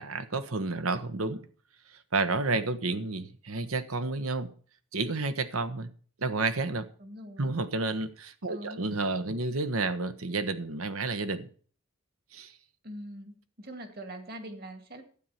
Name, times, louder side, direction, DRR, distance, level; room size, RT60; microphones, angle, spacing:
voice 1, 0.0-1.4 2.1-4.5 4.9-5.9 6.2-6.9 7.4-11.5 12.3-12.5, right 3 dB, 85° right, 1.2 m, -30 dB
voice 2, 7.0-7.5 8.5-8.9 12.8-15.0, right 1 dB, 45° right, 2.2 m, -43 dB
12.0 x 9.2 x 5.8 m
head